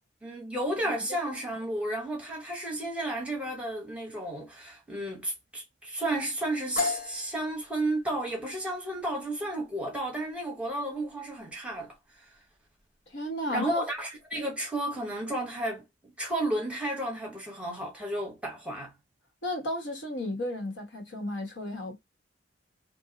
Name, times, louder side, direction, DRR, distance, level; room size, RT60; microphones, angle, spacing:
voice 1, 0.2-12.4 13.5-15.8 16.2-18.9, right 1 dB, 5° right, 0.9 m, -33 dB
sound 1, 6.8-14.4, left 4 dB, 45° left, 0.7 m, -39 dB
voice 2, 13.1-13.8 19.4-22.0, left 1 dB, 70° left, 1.1 m, -33 dB
2.7 x 2.0 x 3.8 m
head